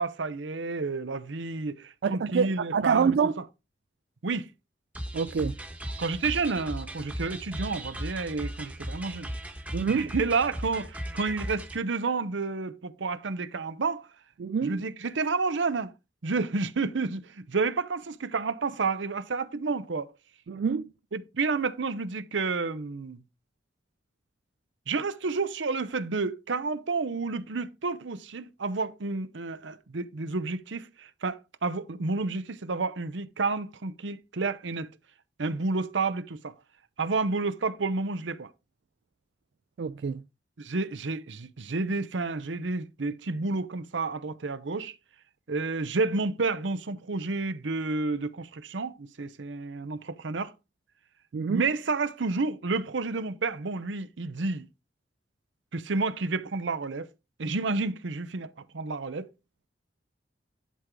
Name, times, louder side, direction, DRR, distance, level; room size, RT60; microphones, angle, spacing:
voice 1, 0.0-3.2 4.2-4.5 6.0-9.3 9.9-14.1 14.6-15.9 16.2-20.1 21.1-23.2 24.9-34.9 35.4-36.5 37.0-38.5 40.6-44.9 45.5-50.5 51.5-54.7 55.7-57.1 57.4-59.3, right 3 dB, 90° right, 0.7 m, -30 dB
voice 2, 2.0-3.3 5.1-5.6 9.7-10.1 14.4-14.8 20.5-20.9 39.8-40.2 51.3-51.6, right 6 dB, 65° right, 0.3 m, -26 dB
sound 1, 4.9-11.8, right 1 dB, 10° right, 1.1 m, -37 dB
11.0 x 3.8 x 4.5 m
head